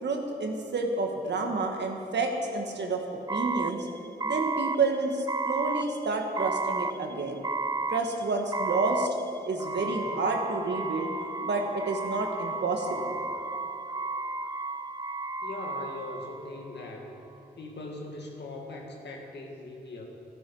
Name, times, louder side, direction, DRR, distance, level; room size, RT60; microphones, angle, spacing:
voice 1, 0.0-3.9 4.2-7.4 7.9-9.1 9.4-11.1 11.4-13.2, right 3 dB, 85° right, 2 dB, 1.6 m, -29 dB
sound 1, 3.3-16.9, right 3 dB, 20° right, 0.5 m, -33 dB
voice 2, 15.4-17.2 17.5-20.1, left 2 dB, 90° left, 0 dB, 1.9 m, -40 dB
13.5 x 12.5 x 5.5 m, 2.8 s
cardioid pair, 55°, 17 cm